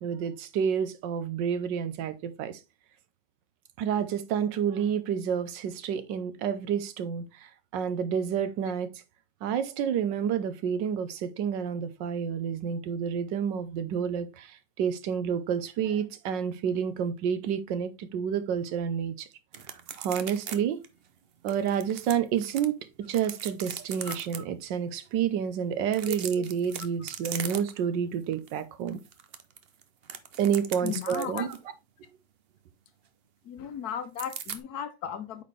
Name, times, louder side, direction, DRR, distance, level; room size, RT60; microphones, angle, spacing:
voice 1, 0.0-2.6 3.8-8.9 9.4-19.3 20.0-20.8 21.4-29.0 30.4-31.6, right 8 dB, 80° right, 1.4 m, -29 dB
sound 1, 19.5-20.6 20.8-20.9 21.5-22.7 23.1-24.4 25.8-27.9 28.3-28.5 28.9-31.6 34.2-34.6, right 7 dB, 65° right, 0.5 m, -39 dB
voice 2, 30.8-31.5 33.4-35.4, left 8 dB, 65° left, 1.3 m, -35 dB
8.5 x 4.3 x 3.3 m
omnidirectional pair, 2.0 m